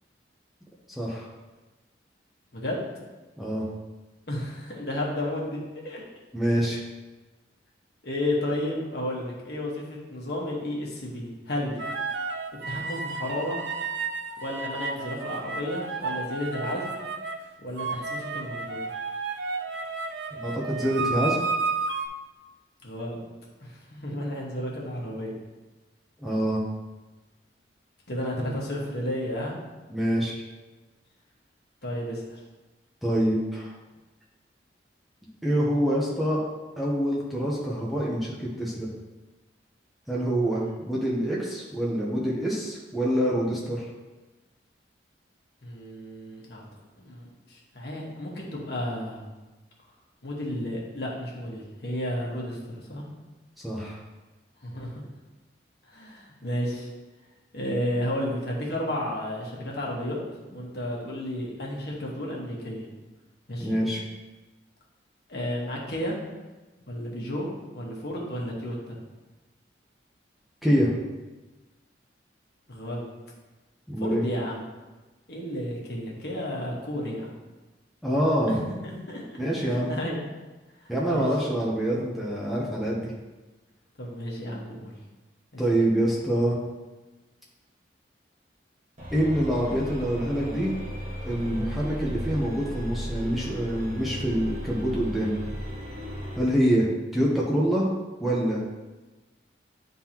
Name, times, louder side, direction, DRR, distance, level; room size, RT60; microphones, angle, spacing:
voice 1, 1.0-1.3 3.4-3.7 6.3-6.8 20.3-21.4 26.2-26.6 29.9-30.4 33.0-33.7 35.4-36.4 36.8-38.9 40.1-43.8 53.6-54.0 63.6-64.0 70.6-70.9 73.9-74.3 78.0-78.5 79.4-79.9 80.9-83.1 85.6-86.6 89.1-90.7 91.2-95.3 96.4-97.9 98.2-98.6, equal, ahead, -6 dB, 0.8 m, -26 dB
voice 2, 4.3-5.6 5.8-6.0 8.0-11.8 12.7-13.6 14.4-17.0 17.6-18.8 22.8-23.2 23.6-25.3 28.1-29.6 31.8-32.4 45.6-46.6 47.0-49.2 50.2-53.1 54.6-55.0 55.9-56.9 57.5-60.2 60.5-62.9 63.5-63.8 65.3-66.2 66.9-67.5 67.7-69.0 72.7-73.1 74.0-74.7 75.3-77.3 78.8-79.4 79.6-80.2 80.8-81.3 84.0-84.9 85.5-85.6 91.5-91.7, left 1 dB, 60° left, -3 dB, 1.4 m, -32 dB
sound 1, 11.8-17.4 17.8-22.1, right 4 dB, 70° right, 0.5 m, -32 dB
sound 2, 89.0-96.5, equal, 40° right, 1.5 m, -35 dB
10.0 x 3.8 x 2.9 m, 1.2 s
head